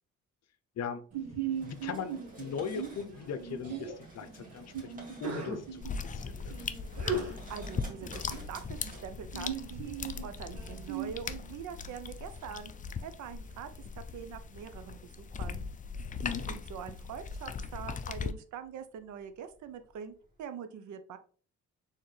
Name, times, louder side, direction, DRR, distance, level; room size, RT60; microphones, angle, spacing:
Sneeze, 1.1-11.1, right 5 dB, 55° right, 1.5 m, -39 dB
sound 1, 1.5-20.4, right 1 dB, 25° right, 2.0 m, -57 dB
voice 1, 1.6-6.5 16.2-16.5, left 7 dB, 60° left, 11 dB, 0.7 m, -39 dB
sound 2, 5.8-18.3, left 5 dB, 25° left, 0.4 m, -39 dB
voice 2, 7.3-12.7 13.0-13.7 14.0-15.7 16.5-21.2, right 8 dB, 75° right, 10 dB, 0.7 m, -44 dB
4.3 x 3.7 x 3.2 m, 0.41 s
cardioid pair, 90°, 30 cm